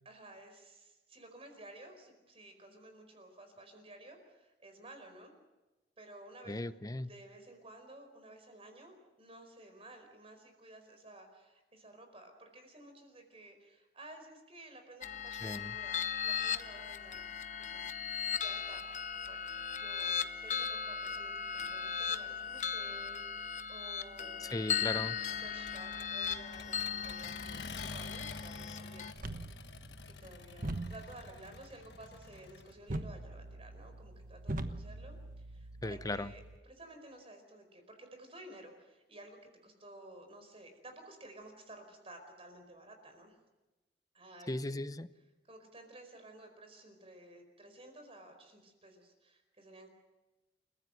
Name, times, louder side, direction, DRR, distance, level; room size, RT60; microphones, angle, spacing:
voice 1, 0.0-5.3 6.0-6.6 7.1-17.3 17.6-24.6 25.4-43.4 44.1-44.7 45.4-49.9, right 1 dB, 35° right, 6 dB, 4.8 m, -54 dB
voice 2, 6.5-7.1 15.4-15.7 24.4-25.2 35.8-36.3 44.5-45.1, left 2 dB, 20° left, 14 dB, 0.7 m, -37 dB
sound 1, 15.0-29.1, left 7 dB, 45° left, 0.9 m, -37 dB
Accelerating revving vroom, 24.5-32.8, left 4 dB, 70° left, 1.4 m, -49 dB
sound 2, 29.2-36.6, right 1 dB, 50° right, 1.2 m, -43 dB
29.0 x 15.5 x 7.8 m, 1.1 s
head